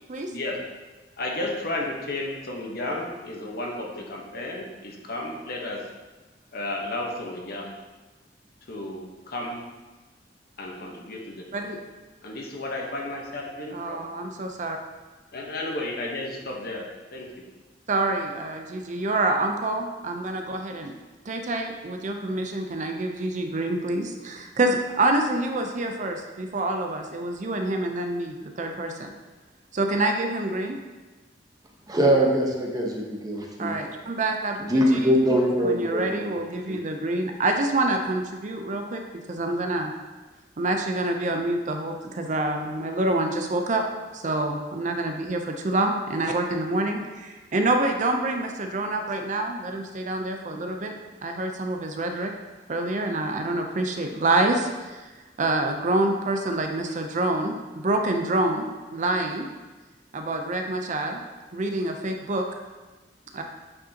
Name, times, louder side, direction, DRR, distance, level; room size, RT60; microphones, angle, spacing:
voice 1, 1.2-5.8 6.5-7.7 8.7-9.6 10.6-11.4 12.2-14.0 15.3-16.8 17.1-17.3, left 2 dB, 60° left, 0 dB, 1.0 m, -33 dB
voice 2, 13.7-14.8 17.9-20.9 21.3-29.1 29.7-30.8 33.6-35.2 35.6-39.9 40.6-43.8 44.1-50.9 51.2-52.3 52.7-55.1 55.4-58.6 58.9-59.5 60.1-61.2 61.5-62.5 63.3-63.4, right 2 dB, 45° right, 4 dB, 0.5 m, -27 dB
voice 3, 31.9-33.8 34.6-36.3 36.7-36.8, equal, 20° right, -1 dB, 0.9 m, -23 dB
8.4 x 5.1 x 2.8 m, 1.2 s
head